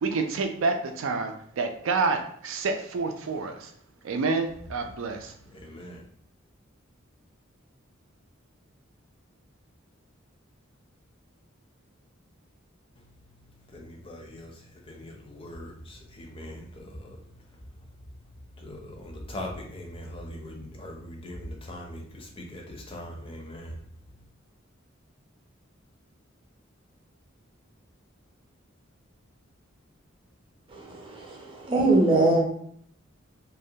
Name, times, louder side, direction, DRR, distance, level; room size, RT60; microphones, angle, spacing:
voice 1, 0.0-3.7 4.0-5.3, right 4 dB, 80° right, 5 dB, 0.4 m, -28 dB
voice 2, 5.6-6.0 13.7-14.5 14.9-17.2 18.6-23.7, left 1 dB, 30° left, 0 dB, 0.5 m, -41 dB
voice 3, 30.7-32.4, right 2 dB, 25° right, -1 dB, 0.6 m, -23 dB
2.3 x 2.1 x 2.7 m, 0.63 s
head